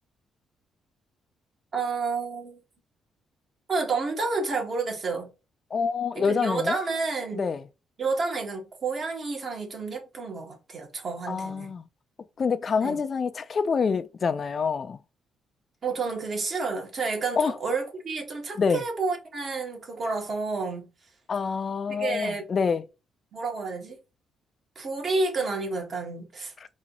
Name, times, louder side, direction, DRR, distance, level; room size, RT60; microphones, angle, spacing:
voice 1, 1.7-2.6 3.7-5.3 6.2-7.5 8.0-11.7 12.8-13.0 15.8-20.9 21.9-22.5 23.3-24.0 24.8-26.5, right 4 dB, 50° right, 1.9 m, -30 dB
voice 2, 5.7-6.8 7.3-7.6 11.3-11.8 12.4-15.0 17.4-17.5 18.6-18.8 21.3-22.8 26.6-26.7, left 5 dB, 45° left, 0.4 m, -26 dB
4.1 x 2.7 x 4.0 m
cardioid pair, 90°, 0 cm